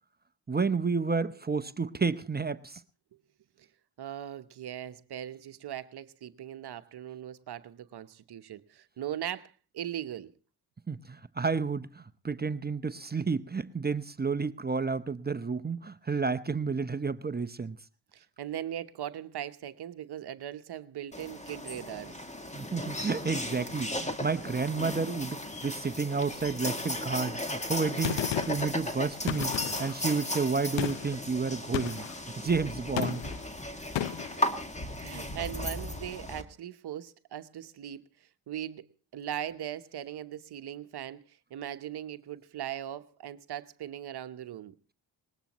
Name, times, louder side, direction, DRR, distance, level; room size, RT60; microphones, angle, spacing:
voice 1, 0.5-2.8 10.9-17.8 22.5-32.1 32.4-33.3, right 4 dB, 20° right, 0.8 m, -31 dB
voice 2, 4.0-10.3 18.1-22.2 34.0-34.3 35.0-38.0 38.5-38.9 39.1-44.7, right 11 dB, 60° right, 1.0 m, -39 dB
sound 1, 21.1-36.4, left 1 dB, 15° left, 2.1 m, -36 dB
Gunshot gunfire, 28.0-28.7 29.3-30.0 30.8-31.2 31.7-32.2 33.0-33.5 34.0-34.4, left 12 dB, 75° left, 0.9 m, -33 dB
20.0 x 20.0 x 3.0 m
supercardioid pair, 60°, 45 cm